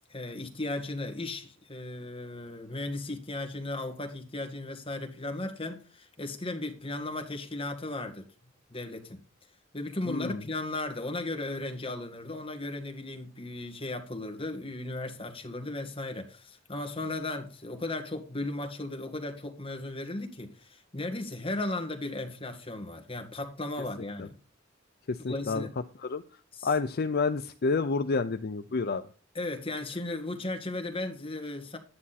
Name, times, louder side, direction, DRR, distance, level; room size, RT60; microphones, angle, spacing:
voice 1, 0.1-8.3 8.7-9.2 9.7-24.3 25.3-25.7 26.5-26.7 29.3-31.8, left 2 dB, 30° left, 1.8 m, -36 dB
voice 2, 10.1-10.4 25.1-25.7 26.0-26.2 26.6-29.1, left 4 dB, 50° left, 0.5 m, -29 dB
11.0 x 9.8 x 4.2 m
head